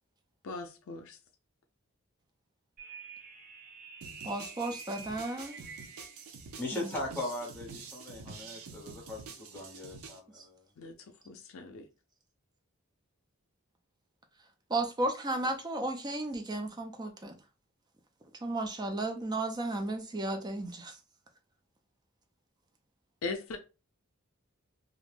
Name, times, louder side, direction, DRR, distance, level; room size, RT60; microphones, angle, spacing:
voice 1, 0.4-1.2 10.8-11.0 11.3-11.9 23.2-23.6, left 3 dB, 70° left, 0.4 m, -39 dB
sound 1, 2.8-6.3, right 4 dB, 45° right, 0.7 m, -48 dB
sound 2, 4.0-10.2, right 5 dB, 90° right, 0.5 m, -48 dB
voice 2, 4.2-5.6 6.7-6.9 10.3-10.4 14.7-17.4 18.4-21.0, right 2 dB, 20° right, 0.4 m, -34 dB
voice 3, 6.6-10.6, left 1 dB, 10° left, 0.8 m, -39 dB
2.4 x 2.1 x 3.2 m
head